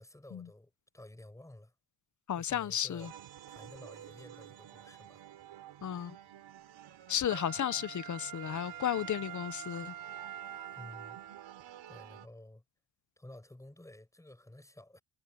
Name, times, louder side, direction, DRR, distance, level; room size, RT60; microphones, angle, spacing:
voice 1, 0.0-1.7 2.4-3.1 3.5-5.2 7.3-7.4 10.7-11.2 11.9-12.6 13.2-15.0, left 1 dB, 5° left, 7.3 m, -52 dB
voice 2, 2.3-3.1 5.8-6.2 7.1-9.9, left 10 dB, 40° left, 0.9 m, -33 dB
sound 1, 3.0-12.3, right 11 dB, 75° right, 6.3 m, -52 dB
Wind instrument woodwind instrument, 7.3-11.5 12.0-12.1, right 9 dB, 50° right, 6.0 m, -45 dB
cardioid pair, 145°, 45 cm